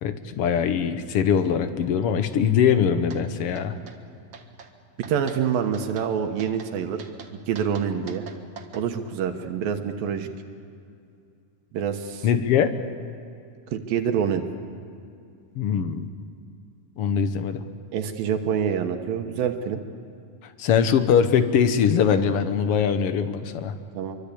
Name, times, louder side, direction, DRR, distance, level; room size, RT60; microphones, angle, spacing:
voice 1, 0.0-3.8 12.2-12.7 15.6-16.1 17.0-17.6 20.6-23.7, left 7 dB, 70° left, 9 dB, 1.4 m, -22 dB
sound 1, 3.1-3.2 3.6-4.0 4.3-4.7 5.0-5.4 5.7-6.1 6.4-6.7 7.0-8.8, right 6 dB, 50° right, 1.7 m, -44 dB
voice 2, 5.1-7.0 7.5-8.2 8.7-10.3 11.7-12.3 13.7-14.4 17.9-19.8 23.9-24.2, right 8 dB, 85° right, 6 dB, 3.0 m, -26 dB
26.0 x 24.0 x 8.5 m, 2.5 s
omnidirectional pair, 4.0 m